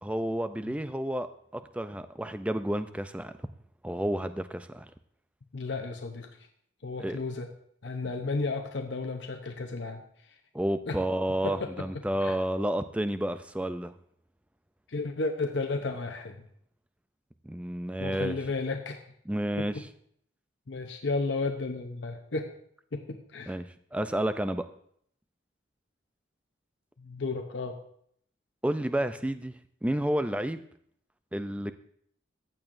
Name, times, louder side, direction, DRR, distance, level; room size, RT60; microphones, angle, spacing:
voice 1, 0.0-3.3 3.8-4.9 7.0-7.2 10.5-13.9 17.4-18.5 19.3-19.9 23.5-24.7 28.6-30.6 31.3-31.7, right 1 dB, 5° right, 11 dB, 0.3 m, -31 dB
voice 2, 5.5-6.3 6.8-7.5 7.8-10.0 10.9-11.0 11.4-11.7 12.2-12.3 14.9-16.3 18.0-19.0 19.6-19.7 20.7-22.5 22.9-23.5 27.0-27.8, left 3 dB, 75° left, 4 dB, 0.8 m, -33 dB
14.5 x 8.9 x 2.6 m, 0.67 s
head